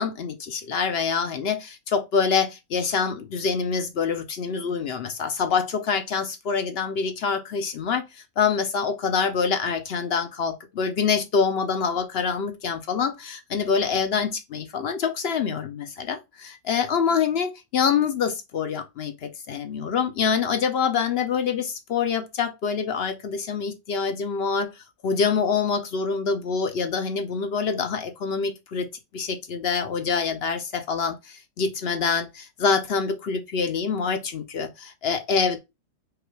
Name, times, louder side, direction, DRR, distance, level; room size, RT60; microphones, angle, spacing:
voice 1, 0.0-8.0 8.4-24.7 25.0-28.9 29.1-35.6, left 6 dB, 65° left, 0.6 m, -25 dB
4.9 x 2.4 x 4.5 m
omnidirectional pair, 1.5 m